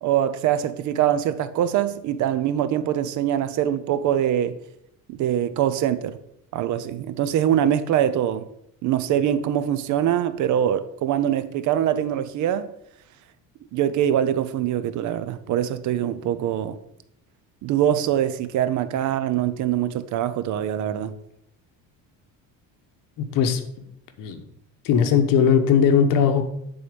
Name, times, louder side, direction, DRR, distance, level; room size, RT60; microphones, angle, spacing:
voice 1, 0.0-4.6 5.1-6.2 6.5-8.4 8.8-12.7 13.7-16.8 17.6-21.1, right 10 dB, 55° right, 0.6 m, -23 dB
voice 2, 23.2-23.6 24.2-24.4 24.8-26.4, left 7 dB, 65° left, 1.1 m, -19 dB
9.7 x 4.0 x 5.1 m
cardioid pair, 145°, 36 cm